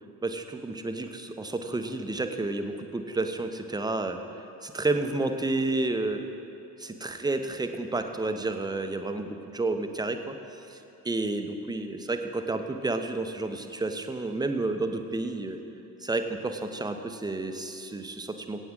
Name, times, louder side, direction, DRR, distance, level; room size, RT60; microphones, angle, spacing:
voice 1, 0.2-6.2 6.8-10.4 10.7-15.6 16.0-18.7, right 2 dB, 10° right, 6 dB, 0.9 m, -31 dB
23.0 x 9.1 x 3.8 m, 2.9 s
figure-of-eight pair, 50°, 49 cm